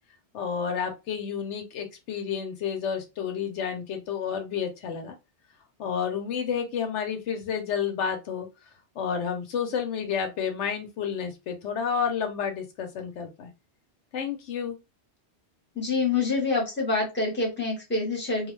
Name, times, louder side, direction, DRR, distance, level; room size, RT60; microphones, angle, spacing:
voice 1, 0.3-5.1 5.8-8.5 9.0-13.5 14.1-14.7, left 7 dB, 85° left, 4 dB, 1.0 m, -30 dB
voice 2, 15.7-18.5, left 3 dB, 10° left, -1 dB, 1.0 m, -26 dB
2.4 x 2.3 x 3.1 m, 0.25 s
omnidirectional pair, 1.2 m